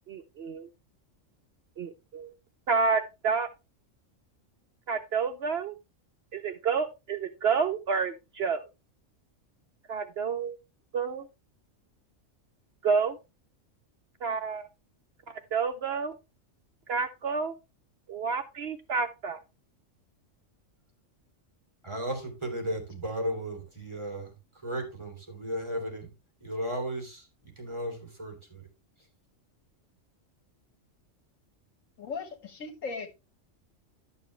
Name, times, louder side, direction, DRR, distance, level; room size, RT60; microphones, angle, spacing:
voice 1, 0.1-0.7 1.8-2.3 2.7-3.5 4.9-5.7 6.3-8.6 9.9-10.6 10.9-11.2 12.8-13.2 14.2-14.7 15.3-16.1 16.9-17.5 18.1-19.4, right 5 dB, 60° right, 8 dB, 0.8 m, -29 dB
voice 2, 21.8-26.1 26.4-28.7, right 1 dB, 20° right, 3 dB, 2.9 m, -35 dB
voice 3, 32.0-33.1, left 4 dB, 85° left, 7 dB, 1.9 m, -37 dB
11.0 x 6.8 x 3.2 m, 0.26 s
omnidirectional pair, 1.3 m